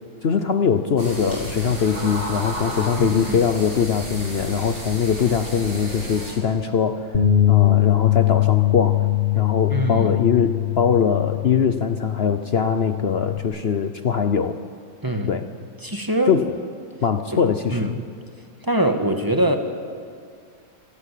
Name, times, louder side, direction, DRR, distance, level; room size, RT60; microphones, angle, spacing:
voice 1, 0.2-7.1 7.5-9.1 9.3-14.6 15.3-15.5 16.3-16.5 17.0-17.9, left 7 dB, 85° left, 9 dB, 0.5 m, -22 dB
sound 1, 1.0-6.3, equal, 75° right, 7.8 m, -32 dB
voice 2, 3.0-3.4 9.7-10.1 15.0-15.3 15.8-16.3 17.3-17.4 17.7-17.9 18.6-19.6, right 1 dB, 10° right, 5 dB, 1.4 m, -22 dB
Bass guitar, 7.1-13.4, left 13 dB, 30° left, 1.7 m, -21 dB
26.5 x 18.5 x 8.4 m, 2.1 s
omnidirectional pair, 2.2 m